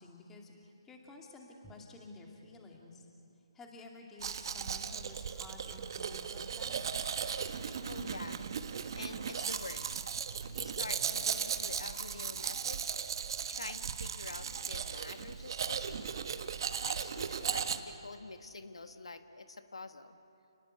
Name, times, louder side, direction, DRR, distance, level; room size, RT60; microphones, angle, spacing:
voice 1, 0.0-3.1 3.5-6.7, left 2 dB, 10° left, 0 dB, 2.6 m, -52 dB
Domestic sounds home sounds, 4.2-17.8, right 7 dB, 50° right, 1.3 m, -37 dB
voice 2, 7.8-8.5 8.9-10.0 10.5-13.0 13.5-16.1 16.8-20.2, left 3 dB, 85° left, 9 dB, 1.4 m, -46 dB
29.5 x 20.0 x 8.1 m, 2.7 s
hypercardioid pair, 150°, 3 cm